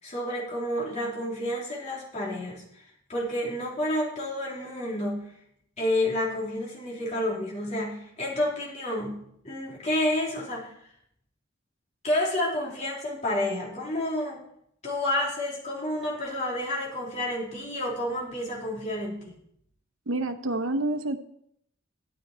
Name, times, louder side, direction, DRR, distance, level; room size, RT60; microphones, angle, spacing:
voice 1, 0.0-2.8 3.1-5.3 5.8-10.7 12.0-14.4 14.8-19.3, left 1 dB, 35° left, -5 dB, 3.1 m, -30 dB
voice 2, 20.1-21.2, right 2 dB, 80° right, 9 dB, 0.9 m, -28 dB
11.0 x 9.4 x 4.3 m, 0.71 s
head